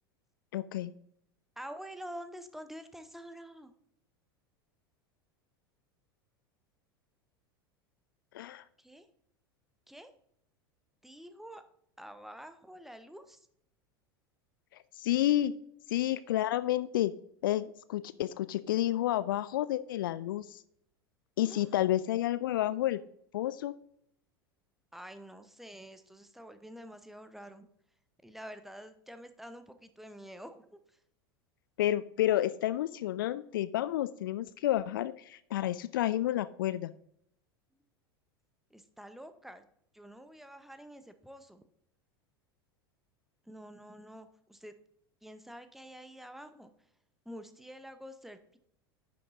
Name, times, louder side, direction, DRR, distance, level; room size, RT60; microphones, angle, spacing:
voice 1, 0.5-0.9 8.3-8.6 15.0-15.5 15.9-17.1 17.4-20.6 21.4-23.0 23.3-23.7 31.8-36.9, left 13 dB, 60° left, 16 dB, 0.4 m, -30 dB
voice 2, 1.6-3.7 8.8-9.1 9.9-10.1 11.0-11.6 12.0-13.5 21.4-21.9 24.9-27.7 28.2-31.0 38.7-39.6 39.9-41.6 43.4-44.7 45.2-46.9 47.2-48.6, equal, ahead, 9 dB, 0.7 m, -48 dB
10.0 x 6.7 x 2.5 m, 0.71 s
figure-of-eight pair, 80°, 13 cm